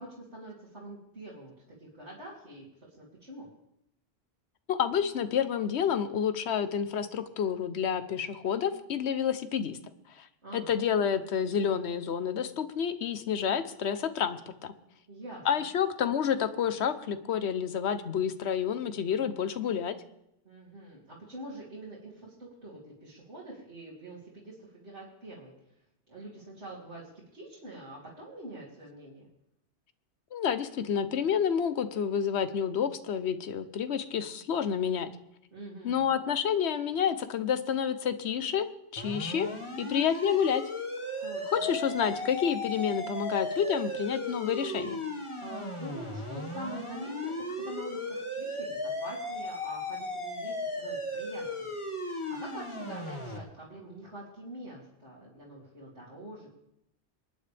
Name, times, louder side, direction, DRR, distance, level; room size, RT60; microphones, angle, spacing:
voice 1, 0.0-1.5 1.8-2.7 3.0-3.5 10.4-10.7 15.1-15.7 20.4-25.5 26.1-29.3 35.5-36.2 41.2-41.7 45.4-51.7 52.0-56.5, right 1 dB, 80° right, -8 dB, 3.1 m, -45 dB
voice 2, 4.7-9.8 10.2-10.3 10.5-14.7 15.4-20.0 30.3-35.1 35.8-38.7 38.9-39.5 39.8-40.6 41.5-45.0, left 8 dB, 75° left, 12 dB, 1.0 m, -29 dB
sound 1, 39.0-53.4, left 1 dB, 25° left, 1.6 m, -36 dB
26.0 x 9.5 x 3.4 m, 0.81 s
omnidirectional pair, 1.1 m